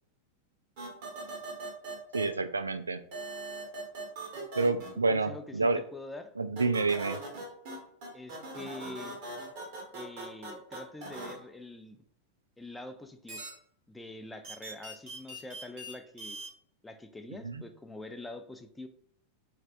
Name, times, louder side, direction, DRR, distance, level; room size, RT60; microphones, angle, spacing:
sound 1, 0.8-2.2 3.1-4.9 6.6-7.8 8.0-11.3 13.3-13.5 14.4-15.9 16.2-16.5, right 2 dB, 50° right, 1.3 m, -40 dB
voice 1, 2.1-3.0 4.6-5.8 6.4-7.2 17.4-17.6, right 3 dB, 75° right, 10 dB, 0.3 m, -28 dB
voice 2, 4.9-6.3 8.1-9.2 9.9-12.0 12.6-13.4 13.9-16.4 16.8-18.9, left 2 dB, 5° left, 7 dB, 0.4 m, -45 dB
4.2 x 3.2 x 2.5 m, 0.62 s
figure-of-eight pair, 90°, 0 cm